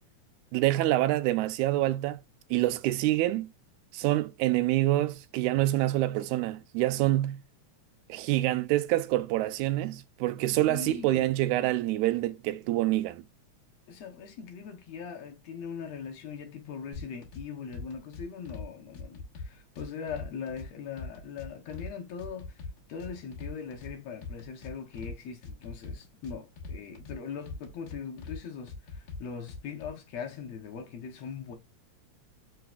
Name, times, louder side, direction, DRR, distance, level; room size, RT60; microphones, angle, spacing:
voice 1, 0.5-2.2 2.5-3.5 3.9-7.4 8.1-13.2, right 16 dB, 85° right, 2.0 m, -26 dB
voice 2, 10.7-11.3 13.9-22.6 22.9-31.6, left 6 dB, 70° left, 2.0 m, -40 dB
sound 1, 16.9-17.4 17.7-18.7 18.9-20.7 21.0-21.9 22.2-23.9 24.2-25.1 25.4-27.2 27.5-28.4 28.7-29.9, left 4 dB, 55° left, 2.1 m, -41 dB
4.6 x 4.1 x 2.3 m
omnidirectional pair, 3.3 m